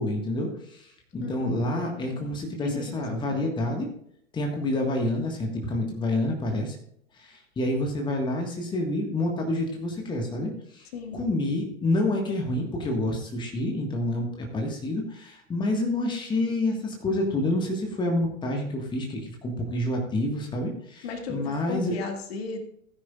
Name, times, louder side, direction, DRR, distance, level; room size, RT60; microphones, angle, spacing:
voice 1, 0.0-3.9 4.3-6.8 7.2-21.9, left 1 dB, 10° left, 1 dB, 1.6 m, -28 dB
voice 2, 1.2-1.5 1.9-3.4 10.9-11.2 21.0-22.6, left 4 dB, 50° left, 5 dB, 2.0 m, -36 dB
16.5 x 9.8 x 2.4 m, 0.71 s
figure-of-eight pair, 105°, 41 cm